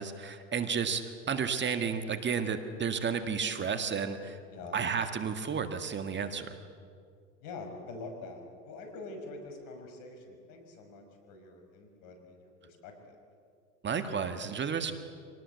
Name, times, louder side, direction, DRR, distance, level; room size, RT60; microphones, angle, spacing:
voice 1, 0.0-4.4 4.7-6.6 13.8-14.9, right 6 dB, 30° right, 8 dB, 1.7 m, -32 dB
voice 2, 4.5-4.8 7.4-13.2, left 3 dB, 60° left, 5 dB, 5.9 m, -45 dB
25.5 x 19.0 x 8.3 m, 2.2 s
hypercardioid pair, 95°, 38 cm